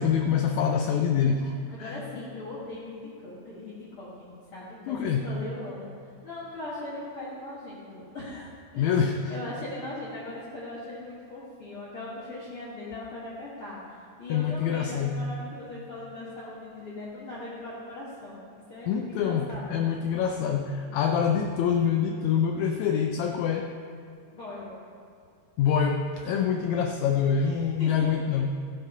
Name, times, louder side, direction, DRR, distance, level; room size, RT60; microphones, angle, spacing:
voice 1, 0.0-2.0 4.9-5.3 8.8-9.3 14.3-15.2 18.9-23.7 25.6-28.5, left 7 dB, 80° left, 4 dB, 1.8 m, -25 dB
voice 2, 1.7-9.0 9.3-19.8 24.3-24.8 27.4-28.1, left 2 dB, 45° left, -9 dB, 2.4 m, -40 dB
16.0 x 6.1 x 5.6 m, 2.3 s
omnidirectional pair, 3.7 m